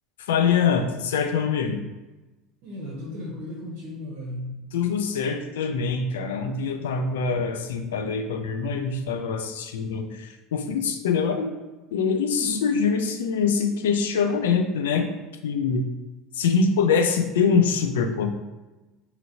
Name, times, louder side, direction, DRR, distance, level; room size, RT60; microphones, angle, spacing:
voice 1, 0.3-1.8 4.7-11.5 11.9-15.1 15.4-15.8 16.3-18.3, left 5 dB, 85° left, 6 dB, 0.3 m, -24 dB
voice 2, 2.6-4.6 12.3-12.7, left 1 dB, 70° right, -3 dB, 0.8 m, -35 dB
2.7 x 2.7 x 2.7 m, 1.1 s
hypercardioid pair, 85°, 0 cm